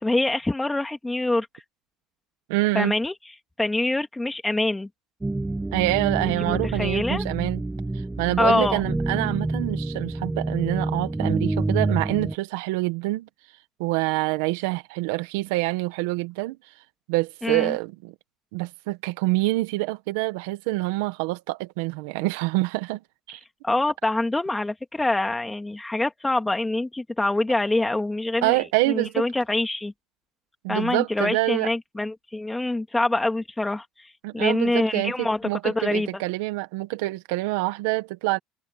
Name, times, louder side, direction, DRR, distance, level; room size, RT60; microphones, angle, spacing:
voice 1, 0.0-1.5 2.7-3.1 3.6-4.9 6.4-7.2 8.4-8.8 17.4-17.7 23.6-28.5 28.9-29.9 30.7-33.8 34.3-36.1, left 2 dB, 10° left, 2.6 m, -25 dB
voice 2, 2.5-2.9 5.7-7.6 8.2-13.3 13.8-16.6 17.1-18.1 18.5-23.0 23.3-23.4 28.4-29.2 30.6-31.7 34.2-38.4, right 20 dB, 85° right, 1.3 m, -26 dB
sound 1, 5.2-12.3, right 2 dB, 10° right, 1.2 m, -28 dB
supercardioid pair, 110°, 0 cm